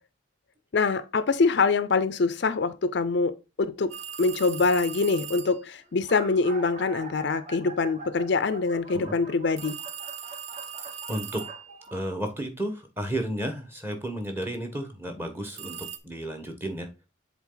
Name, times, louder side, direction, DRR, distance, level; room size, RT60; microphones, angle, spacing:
voice 1, 0.7-3.9 4.2-9.8, left 4 dB, 55° left, 0.4 m, -24 dB
sound 1, 3.9-5.6 9.6-11.8 15.6-16.0, right 8 dB, 75° right, 0.8 m, -39 dB
sound 2, 4.0-4.3 5.1-5.2 5.4-5.5 5.8-12.2, right 3 dB, 30° right, 0.9 m, -43 dB
voice 2, 11.1-11.4 11.9-15.8 16.0-16.9, right 1 dB, 10° right, 1.1 m, -32 dB
7.2 x 4.0 x 3.8 m
head